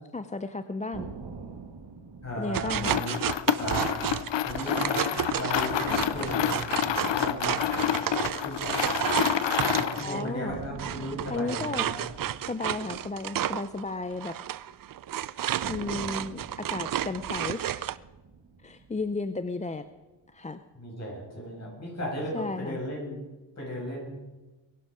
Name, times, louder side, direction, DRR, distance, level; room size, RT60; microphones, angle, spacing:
voice 1, 0.1-1.1 2.4-3.0 10.0-10.6 11.3-11.8 12.4-14.4 15.7-18.0 18.6-19.8 20.3-20.6 22.3-22.8, left 3 dB, 15° left, 11 dB, 0.5 m, -34 dB
sound 1, 0.9-5.0 5.3-5.4 5.8-9.9 10.5-14.8 15.6-20.0, right 5 dB, 60° right, 2.1 m, -45 dB
voice 2, 2.2-3.2 3.6-3.9 4.4-8.0 8.4-9.1 9.7-12.1 20.7-23.2 23.6-24.1, equal, 35° left, -3 dB, 7.1 m, -36 dB
sound 2, 2.5-10.3 10.8-18.0, right 11 dB, 45° right, 0.5 m, -32 dB
sound 3, 2.8-10.1, left 10 dB, 65° left, 0.8 m, -28 dB
21.5 x 11.5 x 5.0 m, 1.1 s
wide cardioid pair, 105°, 47 cm